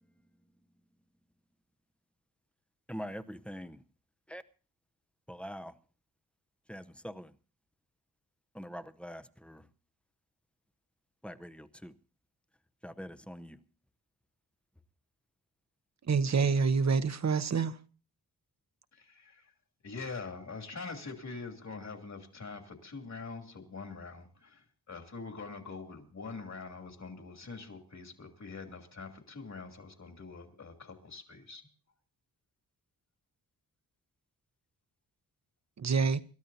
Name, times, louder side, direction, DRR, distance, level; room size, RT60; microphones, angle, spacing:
voice 1, 2.9-3.8 4.3-4.4 5.3-5.7 6.7-7.3 8.5-9.7 11.2-11.9 12.8-13.6, equal, 5° left, 0.7 m, -43 dB
voice 2, 16.1-17.8 35.8-36.2, right 5 dB, 45° right, 0.9 m, -27 dB
voice 3, 18.9-19.5 19.8-31.6, left 4 dB, 45° left, 3.0 m, -44 dB
27.0 x 13.0 x 2.8 m
cardioid pair, 80°, 38 cm